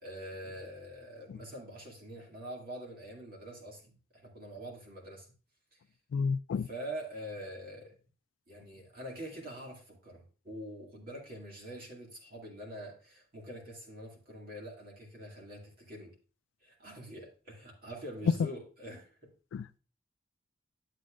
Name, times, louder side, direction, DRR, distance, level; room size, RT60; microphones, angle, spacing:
voice 1, 0.0-5.3 6.6-7.9 8.5-16.1 16.6-19.3, equal, 45° right, 2.2 m, -45 dB
voice 2, 6.1-6.7 19.5-19.8, left 5 dB, 75° left, 0.3 m, -32 dB
10.5 x 7.3 x 2.5 m
head